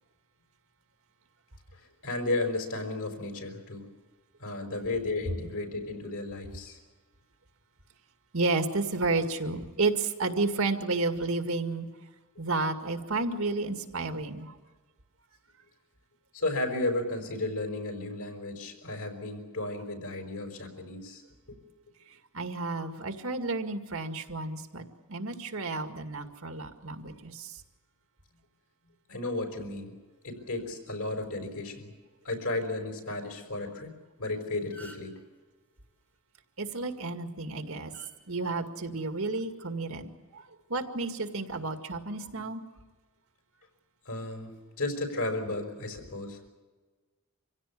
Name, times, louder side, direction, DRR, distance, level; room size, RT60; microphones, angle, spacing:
voice 1, 1.8-3.9 4.4-6.8 16.3-21.2 21.5-21.6 29.1-29.9 30.2-31.9 32.3-35.2 44.1-44.5 44.8-46.5, left 2 dB, 75° left, 5 dB, 5.2 m, -34 dB
voice 2, 8.3-11.9 12.4-14.5 22.3-24.8 25.1-27.5 36.6-37.9 38.3-40.4 40.7-42.6, right 3 dB, 70° right, 6 dB, 2.1 m, -31 dB
sound 1, 34.2-34.3 34.5-35.2 36.8-37.1 37.9-38.1 39.1-39.4, right 1 dB, 5° left, 3.7 m, -49 dB
25.5 x 16.5 x 8.5 m, 1.3 s
head